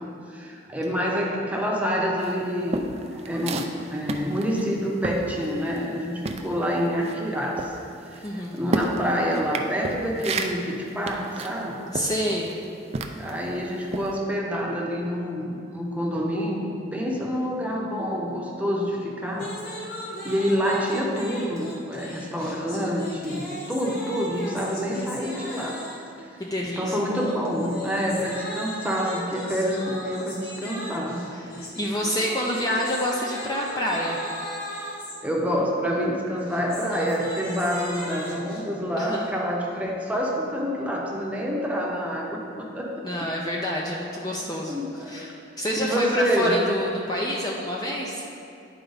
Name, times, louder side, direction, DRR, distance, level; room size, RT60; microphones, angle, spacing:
voice 1, 0.0-3.6 3.9-7.8 8.1-11.8 13.2-16.6 16.9-19.6 20.2-25.8 26.6-31.3 35.2-42.9 44.7-45.2 45.8-46.5, equal, 10° right, -2 dB, 0.8 m, -27 dB
sound 1, 2.2-6.0 6.2-13.4 13.9-14.1, right 3 dB, 35° right, 0.4 m, -32 dB
voice 2, 8.2-8.6 11.9-12.5 26.4-27.0 31.3-34.2 38.0-38.1 39.0-39.3 43.0-48.2, equal, 20° left, -2 dB, 0.5 m, -28 dB
sound 2, 19.3-26.1 27.1-35.2 36.4-38.6, equal, 50° left, 1.4 m, -37 dB
10.5 x 4.5 x 4.0 m, 2.6 s
head